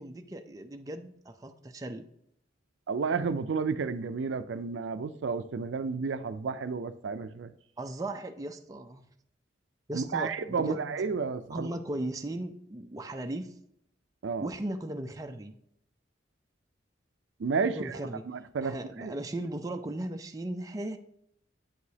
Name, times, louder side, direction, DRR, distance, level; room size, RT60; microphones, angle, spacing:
voice 1, 0.0-2.1 7.8-9.0 9.9-10.9 11.5-13.5 14.4-15.6 17.7-18.2 18.6-21.0, right 1 dB, 20° right, 0.4 m, -37 dB
voice 2, 2.9-7.5 9.9-11.7 14.2-14.5 17.4-18.0 18.3-19.1, right 5 dB, 75° right, 0.4 m, -31 dB
9.1 x 4.8 x 2.8 m
head